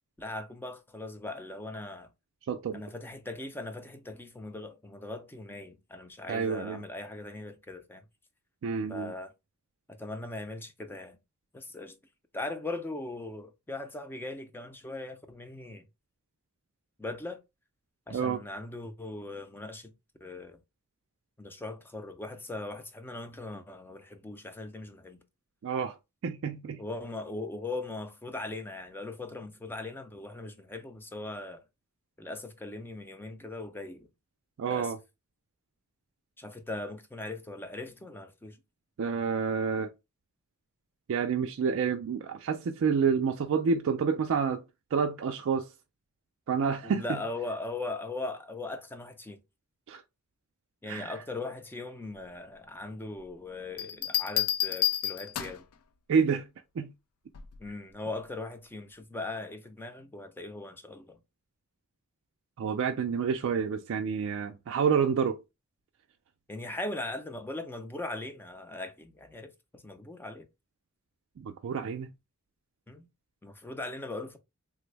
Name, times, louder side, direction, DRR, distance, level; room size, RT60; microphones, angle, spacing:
voice 1, 0.2-2.1 2.7-8.0 8.9-9.3 9.9-11.2 11.5-12.0 12.3-15.8 17.0-17.4 18.1-19.9 20.2-20.6 21.4-25.2 26.8-31.6 32.2-34.1 34.7-34.9 36.4-38.6 46.8-49.4 50.8-55.6 57.6-61.2 66.5-70.5 72.9-73.1 73.4-74.4, left 2 dB, 10° left, 0.4 m, -39 dB
voice 2, 2.5-2.8 6.3-6.8 8.6-9.1 18.1-18.4 25.6-26.0 26.2-26.8 34.6-35.0 39.0-39.9 41.1-44.6 44.9-45.7 46.5-47.2 49.9-50.0 50.9-51.1 56.1-56.5 56.8-56.9 62.6-65.4 71.4-72.1, right 6 dB, 60° right, 0.3 m, -28 dB
sound 1, 53.8-55.7 57.3-57.7, left 11 dB, 90° left, 0.4 m, -30 dB
3.3 x 2.1 x 3.2 m
head